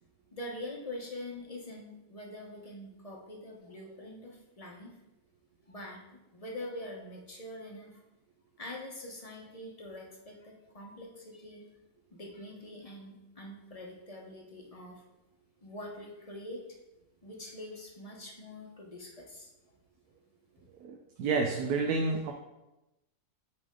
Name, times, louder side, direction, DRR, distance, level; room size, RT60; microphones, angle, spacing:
voice 1, 0.3-4.9 5.7-8.0 8.6-11.7 12.1-15.0 15.6-16.8 17.2-19.5, left 1 dB, 30° left, -1 dB, 0.9 m, -44 dB
voice 2, 20.8-22.3, right 4 dB, 80° right, 3 dB, 1.1 m, -30 dB
8.7 x 3.5 x 3.7 m, 0.96 s
omnidirectional pair, 1.6 m